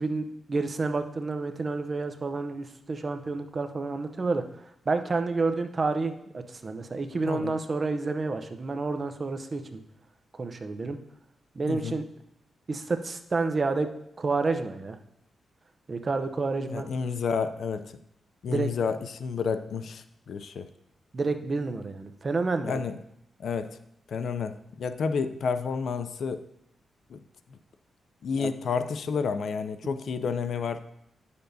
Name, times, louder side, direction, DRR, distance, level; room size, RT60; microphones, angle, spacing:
voice 1, 0.0-4.4 4.9-9.8 10.4-11.0 11.6-12.0 12.7-13.9 14.2-15.0 15.9-16.9 18.5-18.7 21.1-22.7 28.4-28.5, right 3 dB, 40° right, 7 dB, 0.6 m, -29 dB
voice 2, 16.7-17.9 18.4-20.7 22.6-23.0 23.4-23.8 24.1-26.4 27.1-27.2 28.2-30.9, left 5 dB, 70° left, 11 dB, 0.4 m, -30 dB
10.0 x 6.8 x 2.7 m, 0.77 s
cardioid pair, 90°, 0 cm